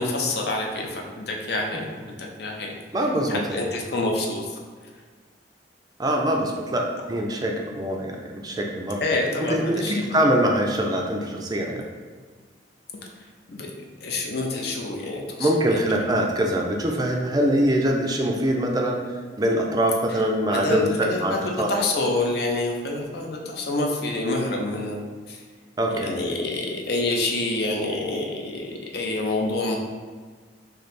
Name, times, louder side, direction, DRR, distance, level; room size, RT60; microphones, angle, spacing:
voice 1, 0.0-2.7 3.3-4.6 9.0-10.0 13.5-13.7 14.0-15.8 20.1-20.2 20.5-25.4 25.9-29.8, left 2 dB, 60° left, 1 dB, 0.6 m, -27 dB
voice 2, 2.9-3.6 6.0-9.1 9.5-11.9 15.4-19.0 19.4-21.8 25.8-26.1, right 1 dB, 20° right, 1 dB, 0.4 m, -23 dB
3.2 x 2.7 x 4.1 m, 1.5 s
head